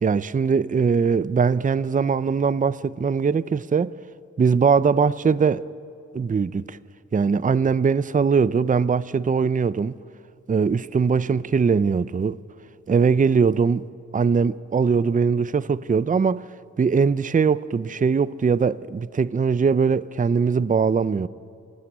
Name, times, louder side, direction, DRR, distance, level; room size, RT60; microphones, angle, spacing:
voice 1, 0.0-3.9 4.4-5.6 6.1-6.8 7.1-9.9 10.5-12.4 12.9-13.8 14.1-16.4 16.8-21.3, right 5 dB, 25° right, 0.6 m, -21 dB
28.0 x 15.0 x 9.4 m
cardioid pair, 75°, 33 cm